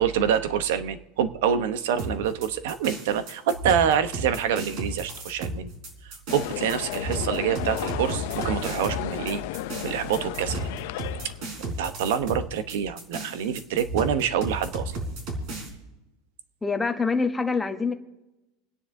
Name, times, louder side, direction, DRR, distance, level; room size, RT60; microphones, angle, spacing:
voice 1, 0.0-5.7 6.0-9.4 9.8-10.7 11.6-15.0, right 8 dB, 75° right, 11 dB, 0.9 m, -26 dB
sound 1, 2.0-15.7, right 2 dB, 45° right, 3.9 m, -34 dB
sound 2, 6.3-11.5, left 16 dB, 65° left, 0.5 m, -34 dB
voice 2, 16.6-17.9, left 4 dB, 10° left, 5 dB, 0.9 m, -25 dB
29.0 x 10.0 x 2.7 m, 1.0 s
supercardioid pair, 160°, 0 cm